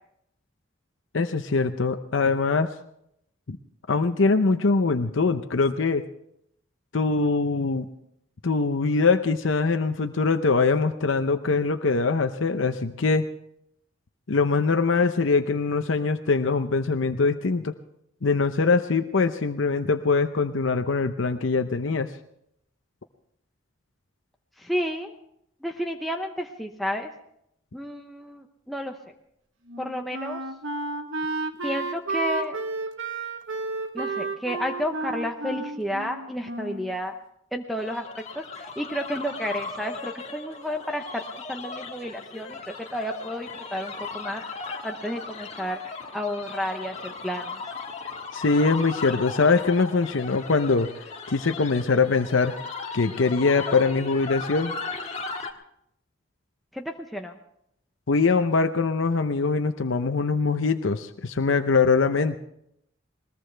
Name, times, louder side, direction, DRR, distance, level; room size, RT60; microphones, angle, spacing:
voice 1, 1.1-2.7 3.5-3.6 3.9-6.0 6.9-7.9 8.4-13.3 14.3-17.7 18.2-22.1 48.3-50.9 51.3-52.5 52.9-54.8 58.1-62.4, left 4 dB, 75° left, 8 dB, 0.7 m, -23 dB
voice 2, 24.6-25.1 25.6-27.1 27.7-29.1 29.8-30.4 31.6-32.6 33.9-37.1 37.5-38.0 38.3-44.4 44.8-45.8 46.1-47.6 56.7-57.4, equal, ahead, 1 dB, 0.8 m, -31 dB
Wind instrument woodwind instrument, 29.7-37.0, right 3 dB, 75° right, 1.2 m, -32 dB
sound 1, 37.8-55.5, left 4 dB, 35° left, 1.7 m, -37 dB
21.0 x 20.5 x 3.4 m, 0.76 s
head